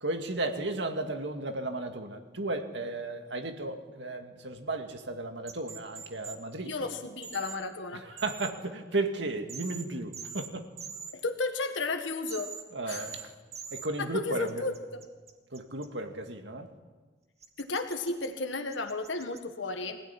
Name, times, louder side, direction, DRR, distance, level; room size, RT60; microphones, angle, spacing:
voice 1, 0.0-6.7 7.9-10.7 12.7-13.3 13.7-14.6 15.5-16.7, right 2 dB, 65° right, 5 dB, 2.2 m, -34 dB
sound 1, 5.5-6.4 7.2-7.6 8.2-8.5 9.5-9.8 10.1-10.5 10.8-11.1 12.3-12.6 12.9-13.2 13.5-13.9 14.5-15.8 17.4-18.3 18.7-19.4, right 6 dB, 35° right, 2.1 m, -42 dB
voice 2, 6.6-8.0 11.1-12.5 12.9-13.1 14.0-14.7 17.6-20.0, left 3 dB, 75° left, 5 dB, 1.8 m, -33 dB
24.0 x 17.0 x 9.9 m, 1.3 s
head